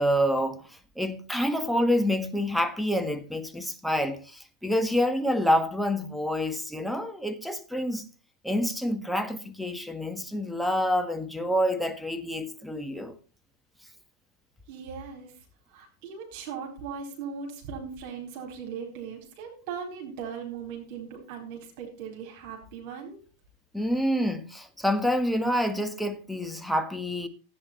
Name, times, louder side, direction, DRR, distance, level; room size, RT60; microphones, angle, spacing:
voice 1, 0.0-8.0 8.4-13.2 23.7-27.3, equal, ahead, 1.5 m, -27 dB
voice 2, 14.7-15.3 15.7-23.2, right 6 dB, 45° right, 4.0 m, -39 dB
15.5 x 9.0 x 4.3 m
figure-of-eight pair, 90°, 0 cm